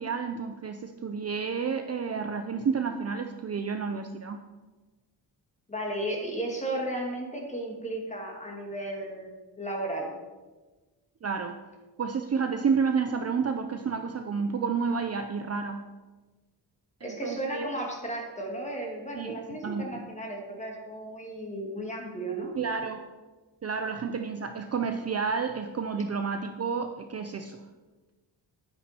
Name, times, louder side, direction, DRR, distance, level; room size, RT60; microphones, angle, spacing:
voice 1, 0.0-4.4 11.2-11.6 12.0-15.8 17.0-17.7 19.1-20.1 22.6-23.0 23.6-27.6, right 5 dB, 35° right, 6 dB, 0.6 m, -30 dB
voice 2, 5.7-9.3 9.6-10.1 17.0-22.5, right 1 dB, 15° left, 0 dB, 2.3 m, -34 dB
11.5 x 9.6 x 4.4 m, 1.2 s
wide cardioid pair, 165°, 43 cm